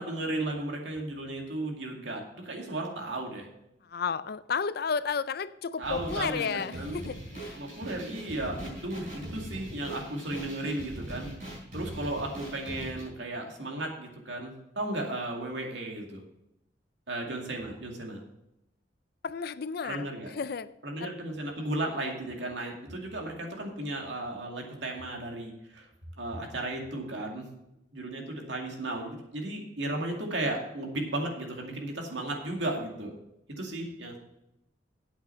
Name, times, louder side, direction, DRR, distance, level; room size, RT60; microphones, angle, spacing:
voice 1, 0.0-3.5 5.8-7.1 7.5-11.3 11.7-16.2 17.1-18.2 19.8-20.3 20.8-25.9 26.2-27.5 27.9-33.1 33.6-34.2, right 1 dB, 75° right, 1 dB, 2.3 m, -35 dB
voice 2, 3.9-7.6 19.2-20.7 21.0-21.1 21.6-21.7, left 6 dB, 55° left, 15 dB, 0.4 m, -33 dB
sound 1, 5.8-13.0, right 1 dB, 45° right, 4.7 m, -41 dB
8.8 x 8.0 x 5.7 m, 0.85 s
head